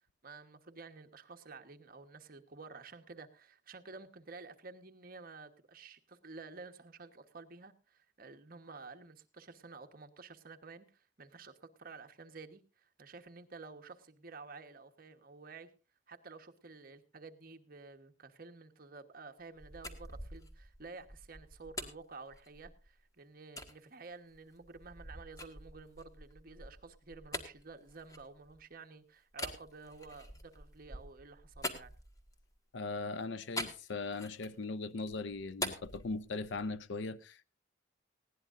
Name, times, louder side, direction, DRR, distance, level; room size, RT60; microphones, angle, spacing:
voice 1, 0.2-15.7 16.1-31.9, right 4 dB, 50° right, 1.2 m, -52 dB
sound 1, 19.4-22.9 23.6-23.7 24.3-28.7 29.3-32.5 33.6-34.6 35.0-36.8, left 1 dB, 20° left, 1.6 m, -45 dB
voice 2, 32.7-37.4, left 3 dB, 75° left, 0.6 m, -39 dB
19.5 x 16.5 x 2.5 m
head